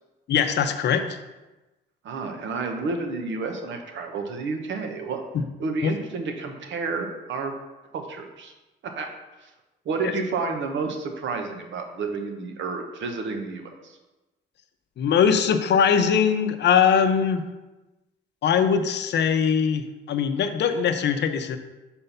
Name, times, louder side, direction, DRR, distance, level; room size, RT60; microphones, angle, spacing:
voice 1, 0.3-1.2 5.3-5.4 5.8-5.9 10.0-10.1 15.0-17.4 18.4-21.6, left 7 dB, 60° left, 8 dB, 0.7 m, -21 dB
voice 2, 2.0-5.2 5.6-7.5 7.9-8.5 8.8-9.1 9.4-9.5 9.8-14.0, right 4 dB, 70° right, 4 dB, 1.1 m, -30 dB
5.4 x 4.4 x 5.6 m, 1.1 s
cardioid pair, 90°, 20 cm